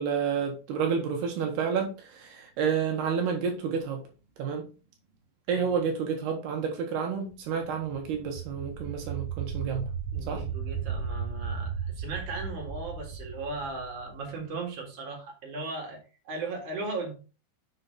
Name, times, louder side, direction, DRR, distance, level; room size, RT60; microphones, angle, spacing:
voice 1, 0.0-4.0 4.4-4.7 5.5-9.9 10.3-10.4, right 6 dB, 70° right, 3.0 m, -30 dB
voice 2, 5.5-5.8 10.1-17.1, right 3 dB, 50° right, 3.3 m, -37 dB
sound 1, 7.6-14.5, right 6 dB, 85° right, 2.9 m, -35 dB
6.8 x 5.8 x 4.0 m
omnidirectional pair, 5.0 m